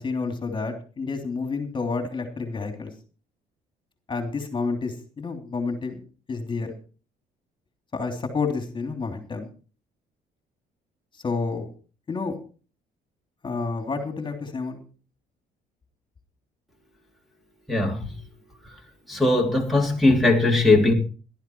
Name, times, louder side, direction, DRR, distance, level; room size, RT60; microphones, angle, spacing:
voice 1, 0.0-2.9 4.1-6.0 6.3-6.7 7.9-9.5 11.2-11.7 12.1-12.3 13.4-14.8, left 4 dB, 30° left, 5 dB, 3.2 m, -29 dB
voice 2, 17.7-18.1 19.1-20.9, left 2 dB, ahead, -1 dB, 3.2 m, -19 dB
18.0 x 12.0 x 4.7 m, 0.38 s
cardioid pair, 110°, 17 cm